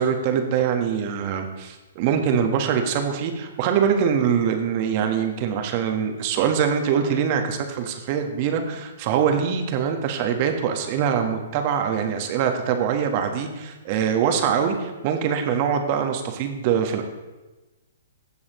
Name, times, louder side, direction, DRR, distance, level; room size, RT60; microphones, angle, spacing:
voice 1, 0.0-17.0, right 7 dB, 40° right, 5 dB, 1.3 m, -23 dB
16.5 x 7.1 x 3.1 m, 1.1 s
figure-of-eight pair, 125°, 0 cm